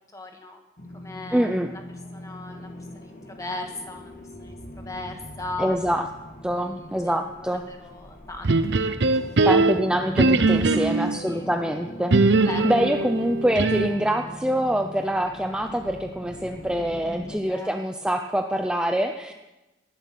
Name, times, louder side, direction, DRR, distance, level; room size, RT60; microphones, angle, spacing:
voice 1, 0.1-0.6 0.9-1.8 2.1-5.8 6.5-6.7 7.0-8.5 9.1-9.3 10.7-11.5 12.4-12.7 17.0-17.7, left 2 dB, 20° left, 3 dB, 1.9 m, -38 dB
sound 1, 0.8-17.4, equal, 50° left, 2.0 m, -41 dB
voice 2, 1.3-1.7 5.6-6.1 6.4-7.6 9.4-12.2 12.6-19.3, equal, 5° right, 5 dB, 0.6 m, -25 dB
sound 2, 8.4-11.2 12.1-14.1, right 3 dB, 70° right, 0.7 m, -21 dB
18.5 x 11.5 x 6.1 m, 1.1 s
head